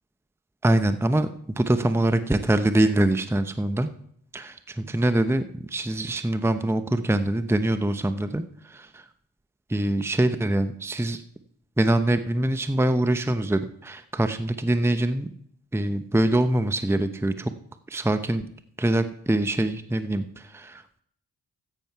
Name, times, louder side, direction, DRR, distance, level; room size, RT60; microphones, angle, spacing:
voice 1, 0.6-3.9 4.3-9.0 9.7-11.2 11.8-15.3 15.7-17.5 17.9-18.4 18.8-21.0, right 1 dB, 5° right, 10 dB, 0.8 m, -24 dB
13.5 x 9.2 x 4.6 m, 0.66 s
supercardioid pair, 40°, 42 cm